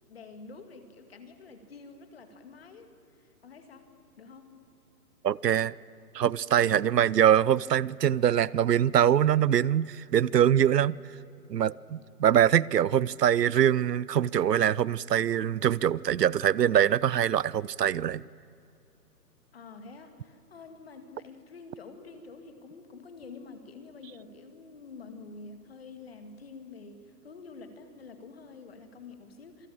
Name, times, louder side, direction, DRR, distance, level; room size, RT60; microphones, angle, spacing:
voice 1, 0.1-3.9 4.2-4.6 6.7-7.0 19.5-29.7, left 4 dB, 35° left, 2.5 m, -48 dB
voice 2, 5.2-5.7 6.1-11.0 11.5-18.2, right 10 dB, 75° right, 0.7 m, -23 dB
27.0 x 20.0 x 8.8 m
hypercardioid pair, 170°, 49 cm